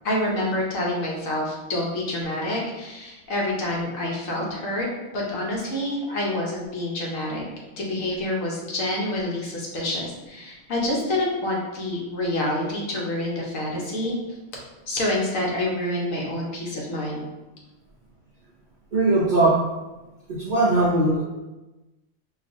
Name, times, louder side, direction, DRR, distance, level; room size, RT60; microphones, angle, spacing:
voice 1, 0.0-4.9 5.1-7.4 7.8-14.2 14.9-17.2, left 1 dB, 75° left, -3 dB, 1.2 m, -27 dB
voice 2, 18.9-19.7 20.3-21.2, right 2 dB, 60° right, -6 dB, 0.5 m, -20 dB
4.5 x 2.4 x 2.5 m, 1.1 s
omnidirectional pair, 1.4 m